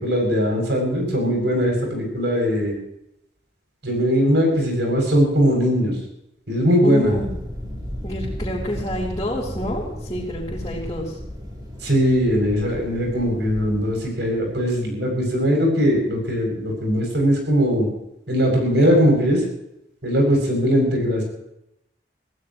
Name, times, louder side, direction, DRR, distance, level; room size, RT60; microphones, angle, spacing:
voice 1, 0.0-2.8 3.8-5.9 6.5-7.1 11.8-17.9 18.3-19.4 20.0-21.2, equal, 70° right, 1 dB, 7.7 m, -20 dB
voice 2, 6.8-7.3 8.0-11.2, equal, 20° left, -7 dB, 4.3 m, -28 dB
sound 1, 7.0-14.5, equal, 20° right, 6.8 m, -34 dB
26.0 x 16.5 x 3.2 m, 0.82 s
head